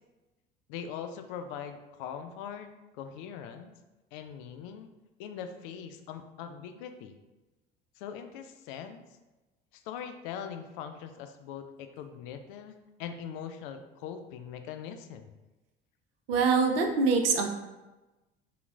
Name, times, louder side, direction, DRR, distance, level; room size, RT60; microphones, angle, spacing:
voice 1, 0.7-3.7 4.1-4.9 5.2-7.2 8.0-9.0 9.7-15.3, left 8 dB, 60° left, 7 dB, 0.4 m, -41 dB
voice 2, 16.3-17.5, right 4 dB, 75° right, 4 dB, 0.5 m, -24 dB
3.9 x 2.8 x 2.4 m, 1.1 s
figure-of-eight pair, 65°, 30 cm